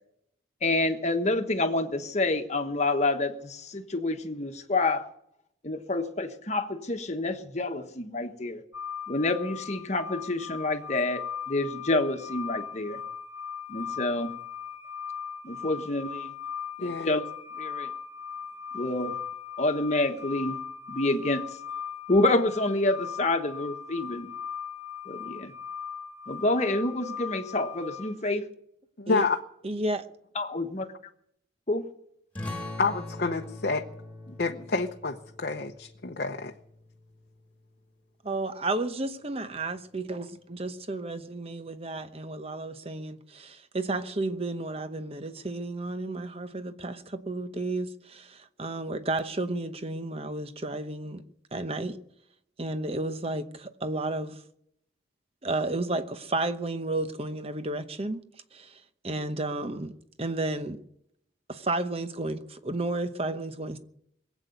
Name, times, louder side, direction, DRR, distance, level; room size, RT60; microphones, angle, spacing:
voice 1, 0.6-5.0 5.6-8.6 9.1-13.0 13.7-14.3 15.4-16.3 16.8-17.2 17.6-17.9 18.7-19.1 19.6-20.6 20.9-21.4 22.1-24.3 25.1-25.5 26.3-28.4 30.3-30.8 31.7-31.9 34.3-34.4, left 2 dB, 35° left, 1.3 m, -28 dB
sound 1, 8.7-28.1, left 7 dB, 15° right, 2.4 m, -39 dB
voice 2, 29.0-29.4 32.8-33.8 34.4-36.5, left 4 dB, 50° left, 0.8 m, -28 dB
voice 3, 29.6-30.0 38.2-51.2 51.5-52.0 52.6-54.4 55.4-58.2 58.5-59.9 60.2-60.8 61.5-63.8, right 2 dB, 30° right, 0.9 m, -32 dB
sound 2, 32.3-37.5, left 2 dB, 10° left, 2.3 m, -42 dB
21.5 x 8.3 x 8.1 m
head